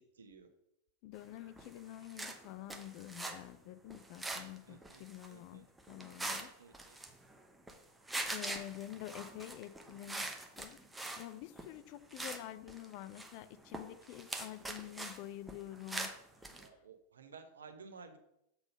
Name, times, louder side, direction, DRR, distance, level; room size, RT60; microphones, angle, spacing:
voice 1, 0.1-0.5 4.6-5.6 6.6-7.0 16.5-18.2, right 5 dB, 70° right, 7 dB, 0.8 m, -55 dB
voice 2, 1.0-6.5 8.3-10.8 11.2-16.1 16.4-16.7, left 13 dB, 45° left, 12 dB, 0.4 m, -48 dB
sound 1, 1.5-1.8 2.0-3.4 3.9-4.6 4.8-5.3 5.8-6.5 6.7-7.8 8.0-11.3 11.6-11.8 12.1-12.4 12.7-15.2 15.5-16.7, right 2 dB, 5° right, 0.8 m, -43 dB
6.9 x 4.0 x 5.4 m, 0.81 s
figure-of-eight pair, 90°, 0 cm